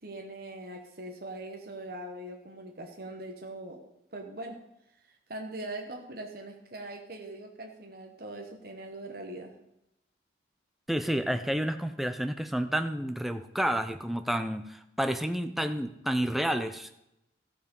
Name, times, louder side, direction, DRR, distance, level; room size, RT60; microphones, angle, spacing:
voice 1, 0.0-3.8 4.1-4.6 5.3-9.5, right 1 dB, 55° right, 2 dB, 1.2 m, -41 dB
voice 2, 10.9-16.9, equal, ahead, 8 dB, 0.5 m, -30 dB
14.0 x 7.5 x 5.4 m, 0.85 s
head